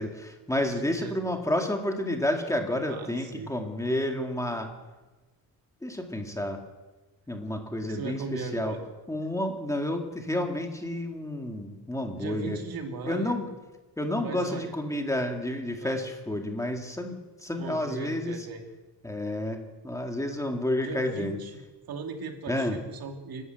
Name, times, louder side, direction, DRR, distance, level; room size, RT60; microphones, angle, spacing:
voice 1, 0.0-4.7 5.8-6.6 7.3-8.8 9.1-12.6 13.0-13.5 14.0-18.5 19.0-21.4 22.5-22.8, left 1 dB, 10° left, 3 dB, 1.9 m, -30 dB
voice 2, 0.6-1.3 2.9-3.5 7.8-8.8 12.2-13.4 14.2-14.7 15.8-16.1 17.5-18.6 20.8-21.6 21.9-23.4, right 4 dB, 70° right, 4 dB, 2.7 m, -38 dB
29.0 x 12.0 x 7.9 m, 1.2 s
wide cardioid pair, 180°, 37 cm